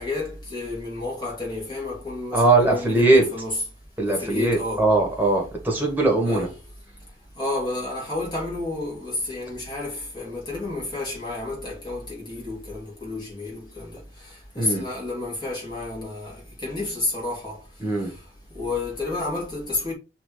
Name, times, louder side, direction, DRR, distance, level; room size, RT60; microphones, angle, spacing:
voice 1, 0.0-3.6 4.1-4.9 6.3-6.4 7.4-14.0 14.5-17.6 18.5-19.9, left 2 dB, 25° left, 3.1 m, -30 dB
voice 2, 2.3-3.3 4.0-6.5 14.6-14.9 17.8-18.1, right 2 dB, 10° right, 2.1 m, -20 dB
5.9 x 3.5 x 5.2 m
head